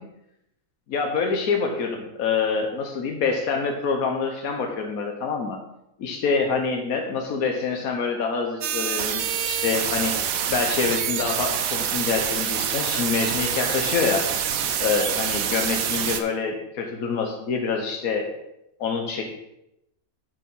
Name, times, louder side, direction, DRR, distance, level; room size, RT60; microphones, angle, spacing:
voice 1, 0.9-5.6 6.0-10.2 10.5-14.2 14.8-18.3 18.8-19.2, left 5 dB, 90° left, 3 dB, 1.4 m, -26 dB
sound 1, 8.6-16.2, right 8 dB, 80° right, 1.1 m, -26 dB
8.5 x 4.8 x 5.5 m, 0.83 s
omnidirectional pair, 1.5 m